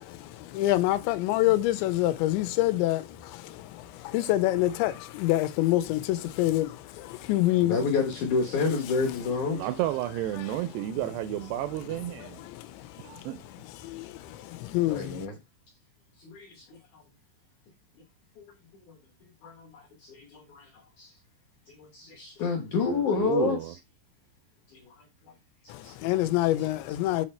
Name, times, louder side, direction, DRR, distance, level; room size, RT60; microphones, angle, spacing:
voice 1, 0.6-3.0 4.1-4.9 5.2-6.0 6.4-6.7 7.3-7.8 14.7-15.0 26.0-27.3, left 16 dB, 85° left, 2.9 m, -24 dB
voice 2, 7.6-9.6 14.9-15.4 16.2-17.0 18.4-18.5 18.9-19.0 19.4-21.1 21.7-23.6 24.7-25.0 25.8-25.9, left 4 dB, 70° left, 1.9 m, -30 dB
voice 3, 9.5-12.4 13.0-13.4 22.8-23.7, right 14 dB, 85° right, 2.4 m, -31 dB
8.0 x 4.3 x 4.3 m
omnidirectional pair, 5.2 m